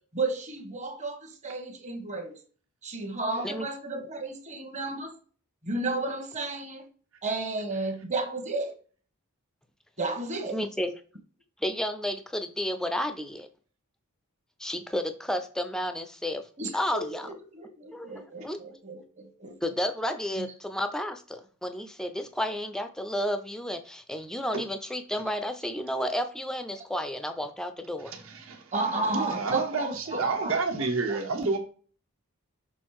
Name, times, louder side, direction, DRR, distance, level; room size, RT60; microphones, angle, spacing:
voice 1, 0.1-2.3 2.8-5.1 5.6-6.8 7.2-8.7 10.0-10.6 16.6-19.6 20.4-20.5 28.7-31.5, right 3 dB, 30° right, 5 dB, 1.2 m, -33 dB
voice 2, 10.5-11.0 11.6-13.5 14.6-16.5 16.7-17.3 17.9-18.1 18.4-18.6 19.6-28.1, equal, 5° left, 8 dB, 0.5 m, -31 dB
voice 3, 28.1-31.6, right 3 dB, 65° right, 2 dB, 1.5 m, -30 dB
6.3 x 3.8 x 4.8 m, 0.41 s
head